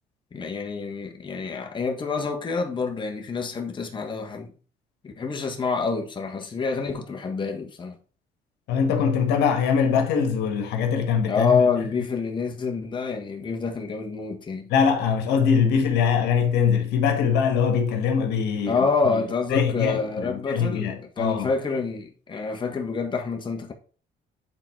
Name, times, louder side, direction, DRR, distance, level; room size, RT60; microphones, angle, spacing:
voice 1, 0.3-4.5 5.0-7.9 11.3-14.7 18.7-23.7, left 4 dB, 30° left, 1.6 m, -27 dB
voice 2, 8.7-11.6 14.7-19.2 19.5-21.5, left 6 dB, 85° left, 1.8 m, -22 dB
8.8 x 4.1 x 4.6 m
cardioid pair, 110°, 17 cm